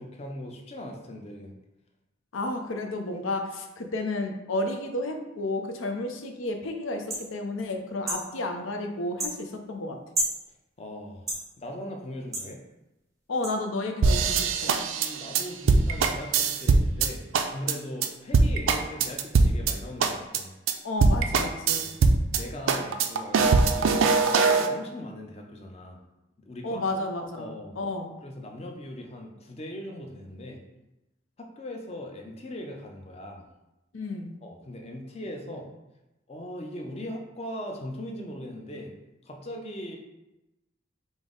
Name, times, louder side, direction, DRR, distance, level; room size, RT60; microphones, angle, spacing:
voice 1, 0.0-1.5 10.8-12.6 14.9-20.5 21.8-21.9 22.3-26.0 26.5-26.8 27.4-27.7 28.2-30.6 31.4-33.4 34.4-35.7 36.3-38.9 39.3-40.0, left 1 dB, 30° left, 1 dB, 0.5 m, -39 dB
voice 2, 2.3-10.0 13.3-14.8 20.8-21.9 26.6-28.2 33.9-34.4, left 2 dB, 85° left, 4 dB, 0.6 m, -32 dB
sound 1, 7.1-7.3 8.1-8.2 9.2-9.4 10.1-10.4 11.3-11.4 12.3-12.5 13.4-13.5, right 1 dB, 15° right, 0.6 m, -29 dB
sound 2, 14.0-17.1 17.3-17.7 18.0-18.1 18.3-19.7 20.0-20.4 20.7-20.8 21.0-22.4 22.7-24.7, right 4 dB, 85° right, 0.4 m, -21 dB
5.3 x 2.0 x 3.8 m, 0.96 s
head